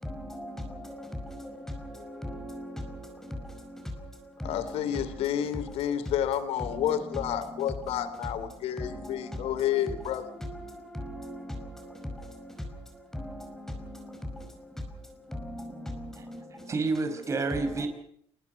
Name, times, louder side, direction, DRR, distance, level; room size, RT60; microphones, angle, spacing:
voice 1, 0.0-3.8 4.4-4.6 8.8-9.5 10.7-12.5 13.1-14.7 15.3-16.7, left 1 dB, 5° left, 5 dB, 5.1 m, -39 dB
voice 2, 4.4-10.3, left 10 dB, 85° left, 13 dB, 3.0 m, -30 dB
voice 3, 16.7-17.9, right 3 dB, 30° right, 7 dB, 5.2 m, -29 dB
29.5 x 21.0 x 5.5 m, 0.67 s
cardioid pair, 150°, 10 cm